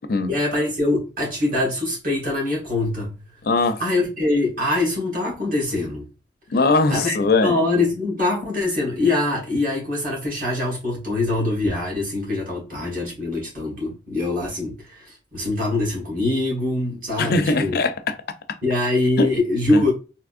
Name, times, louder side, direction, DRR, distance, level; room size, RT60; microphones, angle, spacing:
voice 1, 0.3-3.1 3.8-6.1 6.9-17.8 18.6-19.9, left 2 dB, 50° right, 1.9 m, -23 dB
voice 2, 3.4-3.8 6.5-7.6 17.2-18.1 19.2-19.3 19.7-19.8, left 3 dB, 60° left, 0.5 m, -20 dB
3.6 x 2.9 x 2.5 m
head